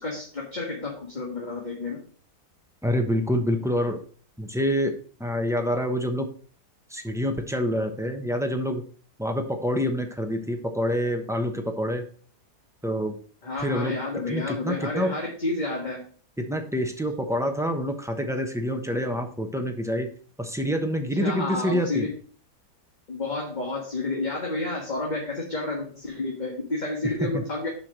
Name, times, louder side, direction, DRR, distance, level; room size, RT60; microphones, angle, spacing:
voice 1, 0.0-2.0 13.4-16.0 21.2-22.1 23.1-27.7, left 2 dB, 25° left, -1 dB, 1.6 m, -30 dB
voice 2, 2.8-4.0 4.4-6.3 6.9-8.8 9.2-12.0 12.8-13.1 13.6-14.0 14.3-15.1 16.4-20.1 20.4-22.1 27.0-27.4, equal, 5° right, 4 dB, 0.6 m, -27 dB
6.9 x 5.1 x 6.1 m, 0.43 s
omnidirectional pair, 1.8 m